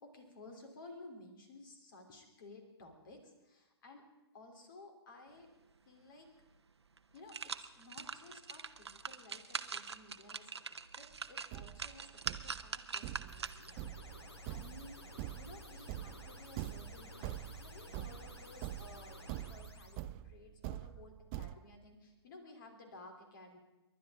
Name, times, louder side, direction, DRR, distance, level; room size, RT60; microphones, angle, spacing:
voice 1, 0.0-4.0 4.3-5.5 5.9-6.3 7.1-10.6 11.0-13.7 14.5-15.0 15.4-19.2 19.5-23.6, left 2 dB, 50° left, 4 dB, 3.3 m, -55 dB
sound 1, 6.4-6.5 7.0-13.8 14.3-14.4, right 5 dB, 70° right, 0.8 m, -43 dB
Thump thud, 11.1-11.2 11.5-21.6, right 13 dB, 25° right, 0.4 m, -45 dB
sound 2, 13.3-20.1, left 1 dB, 70° left, 2.3 m, -53 dB
29.5 x 11.5 x 3.7 m, 1.0 s
figure-of-eight pair, 120°, 14 cm